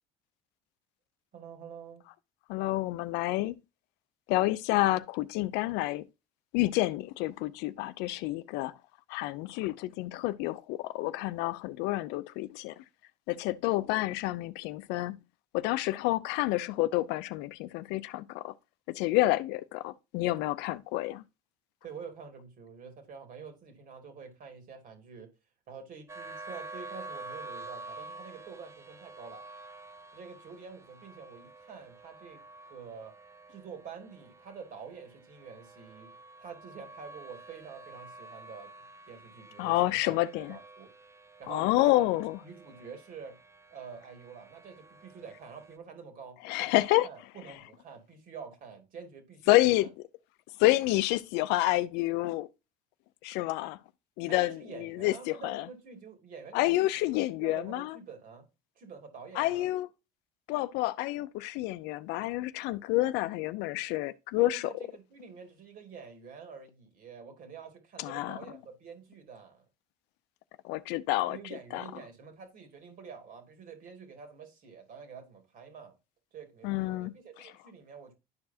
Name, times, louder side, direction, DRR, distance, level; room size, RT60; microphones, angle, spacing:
voice 1, 1.3-2.1 21.8-25.3 25.7-29.4 30.1-33.1 33.5-38.7 39.1-40.9 41.4-42.0 42.4-43.4 43.7-49.9 54.3-57.1 57.4-58.5 58.8-59.7 64.4-69.6 71.3-75.9 76.3-78.1, right 6 dB, 55° right, 2.5 m, -47 dB
voice 2, 2.5-3.6 4.3-6.1 6.5-8.7 9.1-12.8 13.3-15.2 15.5-18.5 18.9-21.2 39.6-40.6 41.5-42.4 46.4-47.7 49.5-50.1 50.6-52.5 53.2-53.8 54.2-55.7 56.5-58.0 59.3-59.9 60.5-64.9 68.0-68.5 70.6-72.1 76.6-77.5, left 17 dB, 75° left, 0.5 m, -29 dB
sound 1, 26.1-45.8, right 3 dB, 15° right, 0.6 m, -49 dB
11.0 x 4.7 x 2.7 m
supercardioid pair, 90°, 17 cm